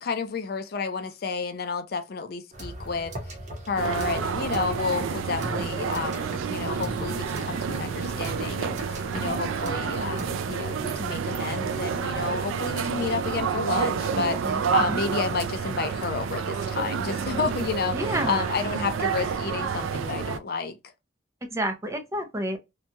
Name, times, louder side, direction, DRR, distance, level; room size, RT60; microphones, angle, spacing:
voice 1, 0.0-3.4 3.7-18.0 18.3-20.8, left 4 dB, 50° left, 0.4 m, -31 dB
sound 1, 2.5-10.3, right 1 dB, 35° right, 0.8 m, -39 dB
sound 2, 3.8-20.4, right 6 dB, 90° right, 0.4 m, -29 dB
voice 2, 14.4-15.0 17.9-18.6 21.4-22.6, right 1 dB, 15° right, 0.4 m, -30 dB
2.8 x 2.2 x 2.7 m
head